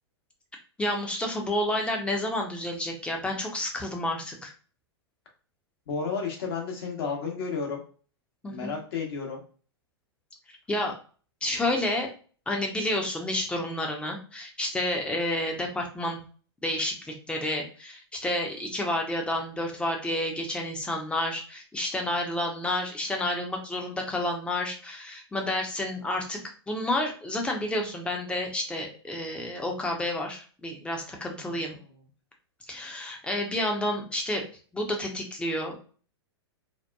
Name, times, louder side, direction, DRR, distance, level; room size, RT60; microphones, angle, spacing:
voice 1, 0.8-4.5 8.4-8.7 10.7-10.9 11.4-12.1 12.5-16.2 16.6-26.4 26.7-31.8 32.7-34.4 34.7-35.7, left 1 dB, 10° left, 1 dB, 0.6 m, -30 dB
voice 2, 5.9-7.8 8.5-9.4 31.4-31.8, left 5 dB, 60° left, 0 dB, 1.0 m, -32 dB
2.9 x 2.1 x 2.2 m, 0.39 s
hypercardioid pair, 105°, 14 cm